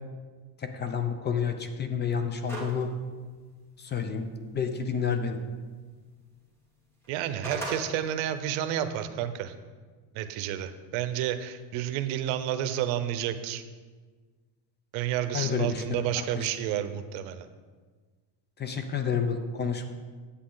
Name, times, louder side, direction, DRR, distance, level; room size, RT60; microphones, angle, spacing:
voice 1, 0.6-2.9 3.8-4.3 4.5-5.4 15.3-15.8 18.6-19.9, left 6 dB, 25° left, 7 dB, 0.5 m, -29 dB
sound 1, 2.5-2.8 3.2-3.3 7.0-7.8, right 2 dB, 5° left, 1.7 m, -35 dB
voice 2, 7.1-9.5 10.1-13.6 14.9-17.5, right 11 dB, 90° right, 10 dB, 0.8 m, -30 dB
8.5 x 8.1 x 3.9 m, 1.5 s
cardioid pair, 145°, 44 cm